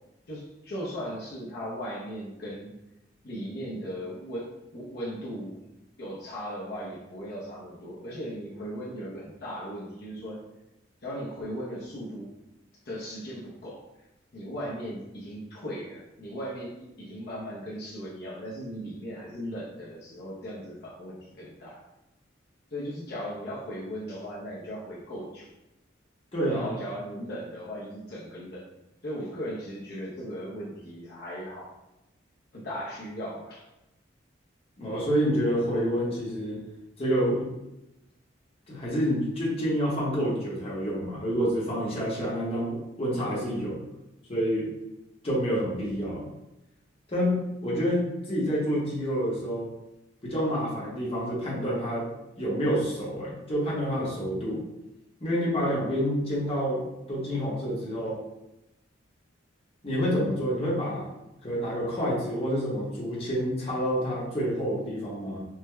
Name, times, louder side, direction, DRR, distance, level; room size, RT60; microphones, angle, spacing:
voice 1, 0.3-2.7 3.2-4.5 4.7-5.6 6.0-10.4 11.0-12.3 12.8-14.0 14.3-21.8 22.7-25.5 26.5-28.6 29.0-31.8 32.5-33.7, equal, 55° left, -7 dB, 0.6 m, -37 dB
voice 2, 26.3-26.7 34.8-36.6 37.0-37.5 38.7-43.8 44.3-44.7 45.2-46.3 47.1-49.7 50.2-52.1 52.4-54.6 55.2-58.2 59.8-61.1 61.4-65.4, equal, 30° left, -6 dB, 0.8 m, -28 dB
4.6 x 2.1 x 2.2 m, 0.93 s
head